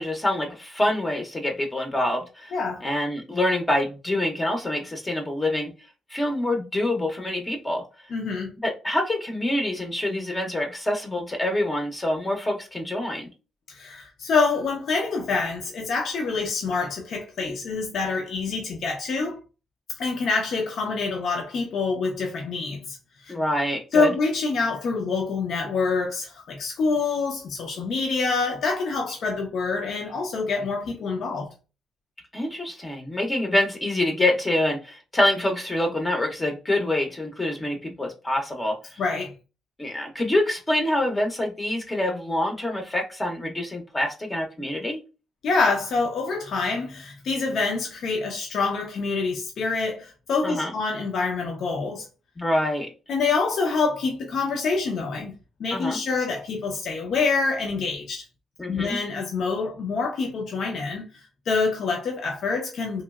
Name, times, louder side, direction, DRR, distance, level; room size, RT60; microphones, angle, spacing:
voice 1, 0.0-2.5 2.8-5.7 6.1-7.8 8.6-13.3 23.3-24.1 32.3-39.0 39.8-45.0 50.4-50.7 52.4-52.9 55.7-56.0 58.6-59.0, left 1 dB, 20° left, 0.6 m, -26 dB
voice 2, 2.5-2.8 8.1-8.5 13.7-19.4 20.0-23.3 23.9-31.5 39.0-39.3 45.4-52.1 53.1-55.3 55.6-58.2 58.7-63.0, left 4 dB, 65° left, 0.6 m, -26 dB
3.0 x 2.7 x 2.3 m
cardioid pair, 90°, 0 cm